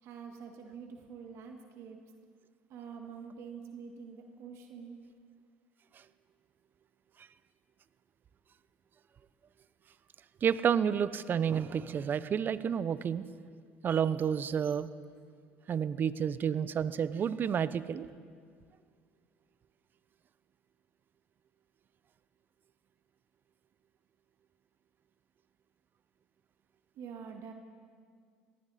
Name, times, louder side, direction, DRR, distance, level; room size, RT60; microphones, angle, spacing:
voice 1, 0.0-2.0 2.7-5.0 26.9-27.5, right 6 dB, 60° right, 3 dB, 1.7 m, -46 dB
voice 2, 10.4-13.2 13.8-14.9 15.7-18.1, right 8 dB, 40° right, 16 dB, 0.6 m, -30 dB
18.0 x 15.5 x 4.2 m, 2.1 s
supercardioid pair, 90°, 5 cm